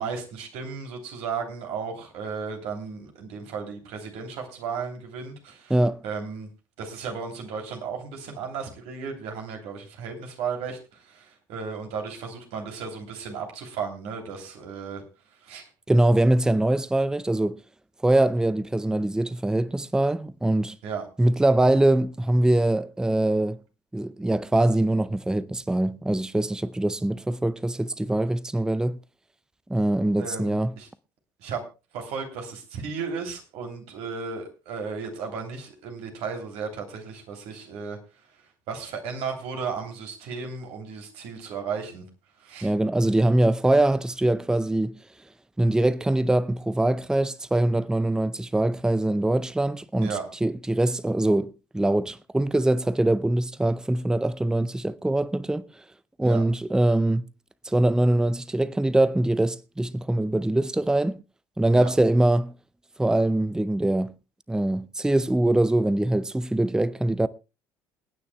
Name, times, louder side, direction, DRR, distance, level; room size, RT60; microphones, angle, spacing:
voice 1, 0.0-5.7 6.0-6.5 6.8-15.0 15.4-15.7 20.8-21.1 30.2-30.9 31.4-31.6 31.9-38.0 38.7-42.0 42.4-42.7 50.0-50.3 56.2-56.4 61.7-61.9, right 5 dB, 60° right, 3.1 m, -34 dB
voice 2, 5.7-6.0 15.9-17.6 18.0-20.8 21.2-23.6 23.9-29.0 29.7-30.7 42.6-45.0 45.6-50.2 50.4-55.7 56.2-57.2 57.6-61.2 61.6-62.5 63.0-64.1 64.5-67.3, right 1 dB, 5° right, 0.5 m, -23 dB
28.0 x 9.4 x 2.2 m
figure-of-eight pair, 55°, 12 cm